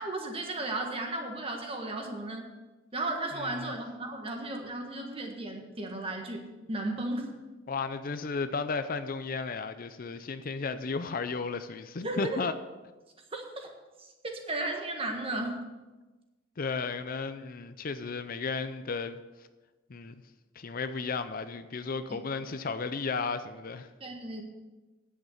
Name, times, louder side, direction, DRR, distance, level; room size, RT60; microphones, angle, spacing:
voice 1, 0.0-2.5 2.9-7.3 12.0-12.4 13.3-13.7 14.0-15.7 22.1-22.2 24.0-24.4, right 2 dB, 30° right, 3 dB, 1.5 m, -35 dB
voice 2, 3.4-3.7 7.7-12.5 16.6-19.2 19.9-20.1 20.6-23.9, left 4 dB, 45° left, 10 dB, 0.5 m, -34 dB
9.3 x 8.0 x 6.4 m, 1.2 s
head